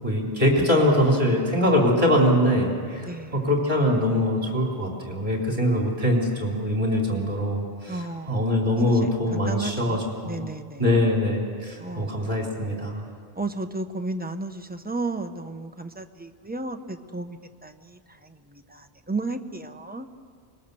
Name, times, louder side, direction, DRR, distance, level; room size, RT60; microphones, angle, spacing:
voice 1, 0.0-10.5 10.8-13.0, left 1 dB, 30° right, -1 dB, 3.7 m, -23 dB
voice 2, 7.9-8.4 9.0-10.8 11.8-12.2 13.4-20.1, right 3 dB, 10° right, 6 dB, 0.8 m, -34 dB
25.0 x 20.0 x 7.0 m, 2.2 s
omnidirectional pair, 1.1 m